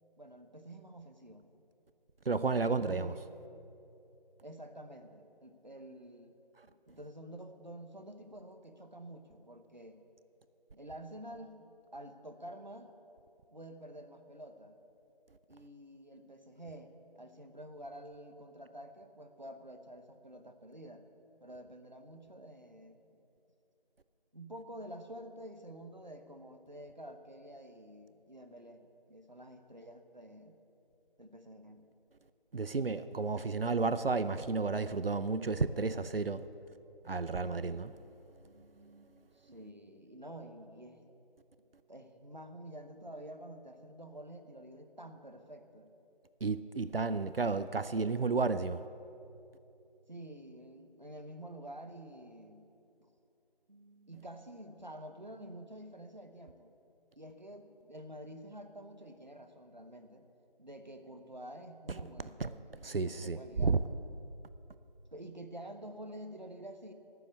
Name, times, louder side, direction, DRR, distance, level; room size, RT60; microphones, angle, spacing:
voice 1, 0.2-1.4 2.8-3.1 4.4-6.4 6.6-10.0 10.7-11.6 11.9-12.9 13.5-14.8 15.5-21.0 21.4-23.2 24.3-30.6 31.2-31.9 38.4-41.0 41.9-45.9 50.1-52.6 53.0-53.1 53.7-56.7 57.2-60.3 60.6-63.8 65.1-66.9, right 1 dB, 50° right, 7 dB, 1.0 m, -49 dB
voice 2, 2.3-3.1 6.6-6.7 32.5-36.5 37.0-38.0 46.4-48.9 62.4-62.5 62.8-63.8, right 4 dB, 75° right, 13 dB, 0.6 m, -32 dB
13.0 x 7.1 x 8.3 m, 2.8 s
figure-of-eight pair, 175°, 29 cm